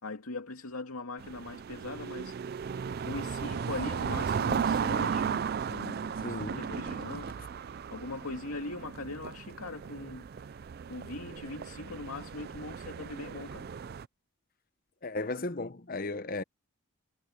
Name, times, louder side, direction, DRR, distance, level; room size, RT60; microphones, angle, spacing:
voice 1, 0.0-2.8 3.1-10.2 10.9-13.7, left 2 dB, 85° left, 2.3 m, -41 dB
sound 1, 1.2-14.1, right 6 dB, 45° right, 0.3 m, -35 dB
voice 2, 6.2-6.6 15.0-16.4, left 2 dB, 40° left, 0.8 m, -35 dB
head